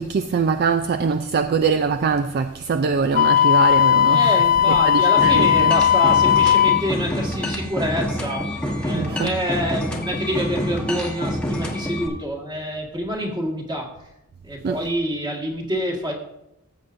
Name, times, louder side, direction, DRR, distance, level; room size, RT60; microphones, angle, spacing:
voice 1, 0.0-4.3 4.7-5.7 8.9-9.3 14.6-14.8, right 5 dB, 45° right, 0.3 m, -23 dB
Wind instrument woodwind instrument, 3.1-6.9, left 9 dB, 40° left, 0.3 m, -16 dB
voice 2, 4.1-8.5 8.8-13.9 14.4-16.1, equal, 20° right, 1.7 m, -27 dB
sound 1, 5.2-12.1, equal, 5° left, 1.1 m, -27 dB
14.0 x 8.3 x 2.6 m
head